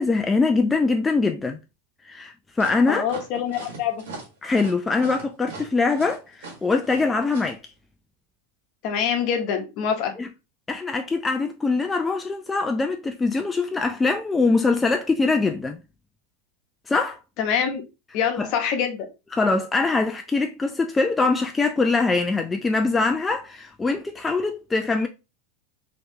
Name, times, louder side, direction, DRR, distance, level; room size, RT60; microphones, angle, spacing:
voice 1, 0.0-1.6 2.1-3.0 4.4-7.6 10.2-10.3 10.7-15.8 16.9-17.2 18.4-18.5 19.3-25.1, left 3 dB, 15° left, 0.3 m, -23 dB
sound 1, 2.6-7.5, right 3 dB, 85° right, 1.3 m, -39 dB
voice 2, 2.9-4.0 8.8-10.1 17.4-17.8 18.1-19.1, left 7 dB, 50° left, 0.9 m, -25 dB
3.3 x 2.9 x 2.7 m
supercardioid pair, 125°, 0 cm